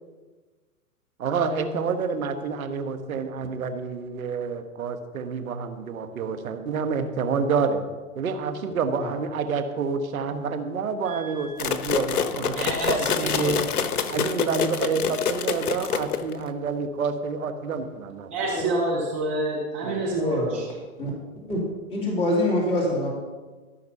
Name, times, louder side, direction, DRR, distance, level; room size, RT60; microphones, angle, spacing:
voice 1, 1.2-7.9 8.1-13.7 14.1-18.5 19.8-20.0, right 5 dB, 65° right, 8 dB, 1.6 m, -28 dB
voice 2, 11.1-11.6 12.5-13.6 18.3-20.8, right 2 dB, 10° right, -2 dB, 0.4 m, -28 dB
sound 1, 11.6-16.5, left 7 dB, 75° left, 1.0 m, -27 dB
voice 3, 20.2-20.5 21.0-21.1 21.5-21.6 21.9-23.1, left 1 dB, 15° left, -3 dB, 2.6 m, -25 dB
14.5 x 6.1 x 5.6 m, 1.3 s
hypercardioid pair, 140°, 45 cm